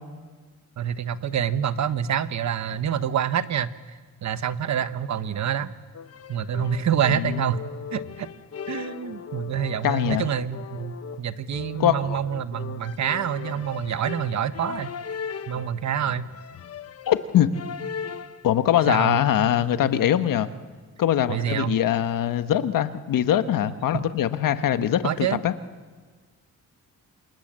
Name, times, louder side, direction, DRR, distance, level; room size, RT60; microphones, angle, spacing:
voice 1, 0.8-5.7 6.3-7.6 7.9-8.3 8.7-14.9 15.5-16.2 18.9-19.2 21.3-21.7 25.0-25.4, right 9 dB, 55° right, 12 dB, 1.1 m, -27 dB
sound 1, 5.9-18.5, left 7 dB, 50° left, 1.1 m, -38 dB
voice 2, 7.1-7.5 9.8-10.3 11.8-12.2 17.1-17.5 18.4-20.5 21.0-25.5, left 10 dB, 80° left, 10 dB, 1.3 m, -22 dB
27.5 x 27.0 x 7.5 m, 1.5 s
wide cardioid pair, 145°, 33 cm